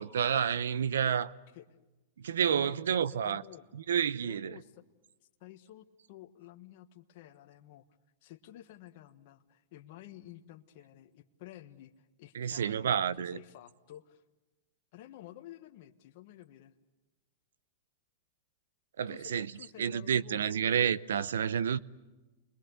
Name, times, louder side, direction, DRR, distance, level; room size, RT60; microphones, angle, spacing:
voice 1, 0.0-1.3 2.2-3.4 3.7-4.6 12.3-13.4 19.0-19.5 19.8-21.8, right 8 dB, 90° right, 0.8 m, -29 dB
voice 2, 2.4-3.7 4.2-4.8 5.4-7.8 8.2-14.2 14.9-16.7 19.1-20.6, left 13 dB, 55° left, 1.4 m, -51 dB
29.5 x 21.5 x 8.1 m
hypercardioid pair, 135°, 0 cm